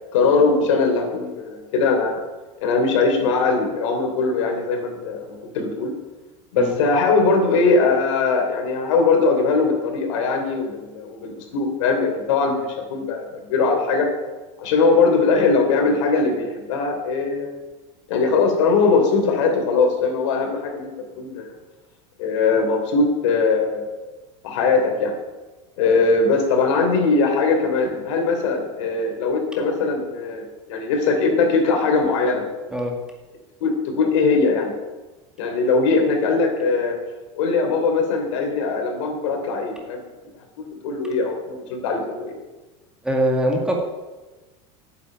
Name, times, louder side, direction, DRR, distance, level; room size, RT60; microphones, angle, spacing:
voice 1, 0.0-2.2 2.6-5.9 6.5-14.1 14.6-17.5 18.1-21.5 22.2-23.8 24.4-25.1 25.8-30.4 30.7-32.4 33.6-34.7 35.4-36.9 37.3-40.0 40.6-42.4, left 4 dB, 80° left, 3 dB, 3.2 m, -20 dB
voice 2, 43.0-43.8, right 1 dB, 5° right, 0 dB, 2.0 m, -22 dB
9.5 x 7.2 x 8.9 m, 1.2 s
supercardioid pair, 145°, 16 cm